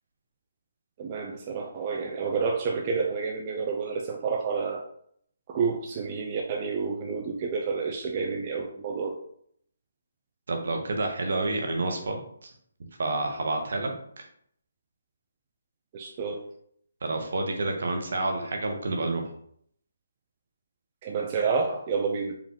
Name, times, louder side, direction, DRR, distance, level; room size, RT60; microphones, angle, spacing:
voice 1, 1.0-4.8 5.5-9.2 15.9-16.4 21.0-22.4, right 5 dB, 30° right, 1 dB, 0.5 m, -29 dB
voice 2, 10.5-12.5 13.0-13.9 14.2-14.3 17.0-19.2, right 2 dB, 65° right, 3 dB, 1.0 m, -29 dB
4.9 x 2.6 x 3.7 m, 0.66 s
hypercardioid pair, 155°, 0 cm